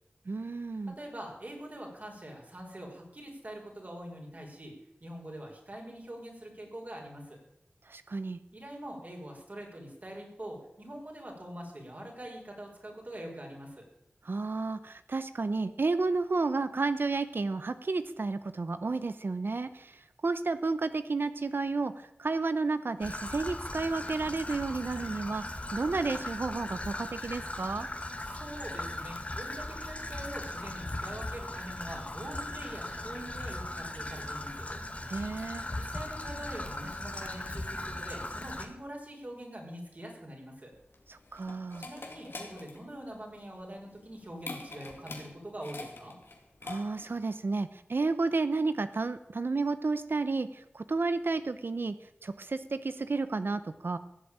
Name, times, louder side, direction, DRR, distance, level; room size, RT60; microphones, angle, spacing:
voice 1, 0.3-0.9 7.9-8.4 14.2-25.4 25.7-27.9 35.1-35.6 41.1-41.9 46.6-51.9 52.2-54.0, right 3 dB, 70° right, 12 dB, 0.7 m, -31 dB
voice 2, 1.0-4.7 5.0-7.4 8.5-13.8 28.2-34.7 35.7-40.7 41.8-46.1, right 1 dB, 45° right, 0 dB, 5.2 m, -44 dB
Traffic noise roadway noise / Trickle dribble, 23.0-38.7, left 1 dB, 35° left, 1.7 m, -38 dB
sound 1, 40.7-47.2, left 3 dB, 85° left, 2.5 m, -45 dB
16.0 x 8.0 x 8.8 m, 0.84 s
wide cardioid pair, 65°, 4 cm